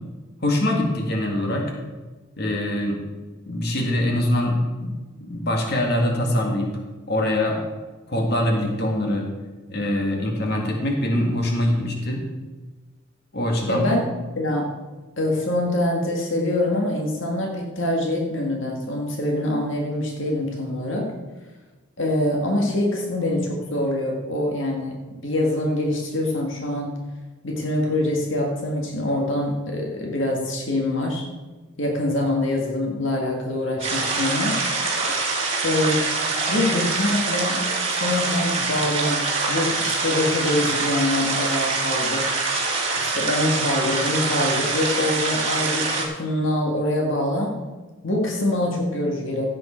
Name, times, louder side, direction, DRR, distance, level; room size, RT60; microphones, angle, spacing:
voice 1, 0.4-1.7 2.4-3.0 3.5-4.9 5.2-6.7 7.1-7.6 8.1-9.3 9.7-12.2 13.3-13.9, left 1 dB, 50° left, 1 dB, 2.1 m, -23 dB
voice 2, 13.7-14.0 14.4-14.7 15.2-21.1 22.0-27.0 27.4-31.3 31.8-34.9 35.6-36.1 36.5-42.3 42.9-47.6 48.0-49.5, left 1 dB, 70° left, 0 dB, 1.8 m, -24 dB
sound 1, 33.8-46.0, right 3 dB, 30° right, 2.5 m, -24 dB
16.0 x 7.7 x 4.5 m, 1.3 s
head